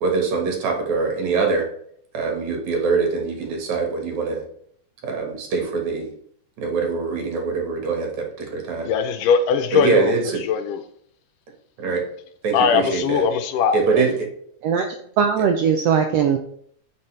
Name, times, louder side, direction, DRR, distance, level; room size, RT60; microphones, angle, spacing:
voice 1, 0.0-1.6 2.1-4.4 5.0-6.1 6.6-8.9 9.7-10.4 11.8-12.0 12.4-13.2 13.7-14.3, right 4 dB, 65° right, 1 dB, 2.9 m, -23 dB
voice 2, 8.8-10.1 10.4-10.8 12.5-14.0, left 6 dB, 80° left, 9 dB, 2.3 m, -20 dB
voice 3, 15.2-16.4, right 7 dB, 90° right, 5 dB, 1.4 m, -19 dB
9.4 x 5.8 x 3.3 m, 0.66 s
omnidirectional pair, 3.7 m